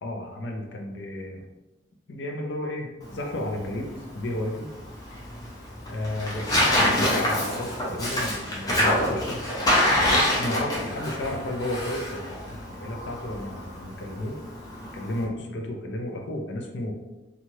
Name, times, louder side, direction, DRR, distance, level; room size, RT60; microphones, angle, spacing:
voice 1, 0.0-1.5 2.1-4.7 5.9-9.4 10.0-14.4 14.9-16.9, left 1 dB, 70° left, 2 dB, 0.5 m, -33 dB
Tearing, 3.0-15.2, left 1 dB, 20° left, 0.6 m, -27 dB
3.1 x 2.4 x 2.7 m, 1.1 s
head